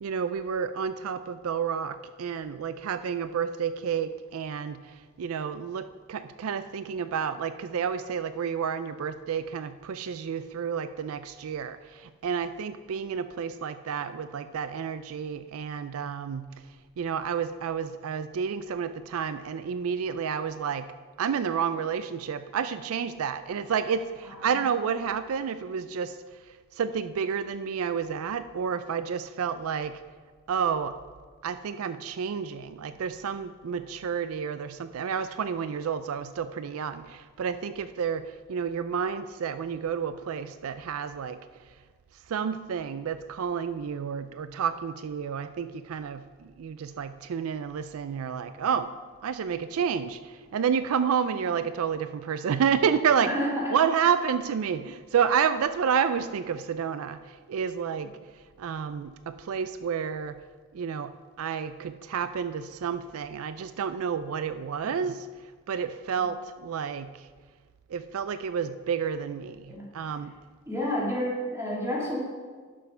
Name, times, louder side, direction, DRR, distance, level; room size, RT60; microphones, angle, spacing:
voice 1, 0.0-16.5 17.0-20.9 21.2-26.2 26.7-30.0 30.5-31.0 31.4-41.4 42.3-48.9 49.2-53.3 53.7-58.2 58.6-60.4 60.7-61.1 61.4-65.3 65.7-67.3 67.9-70.3, right 7 dB, 80° right, 12 dB, 0.4 m, -30 dB
voice 2, 53.2-53.8 66.1-66.2 69.7-69.9 70.7-72.2, equal, 10° right, -4 dB, 2.2 m, -30 dB
11.0 x 6.2 x 5.5 m, 1.5 s
head